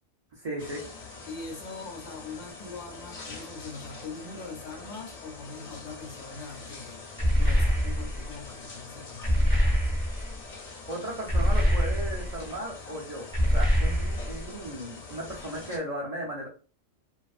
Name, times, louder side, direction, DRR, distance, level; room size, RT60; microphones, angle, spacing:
voice 1, 0.4-0.8 10.9-16.5, right 1 dB, 70° right, -3 dB, 0.3 m, -36 dB
sound 1, 0.6-15.8, left 4 dB, 50° left, 0.5 m, -44 dB
voice 2, 1.3-7.0 7.4-9.4, left 4 dB, 90° left, 0 dB, 1.0 m, -42 dB
sound 2, 7.2-8.3 9.2-10.3 11.3-12.4 13.3-14.4, equal, 25° right, 0.6 m, -24 dB
2.4 x 2.4 x 2.3 m, 0.38 s
omnidirectional pair, 1.4 m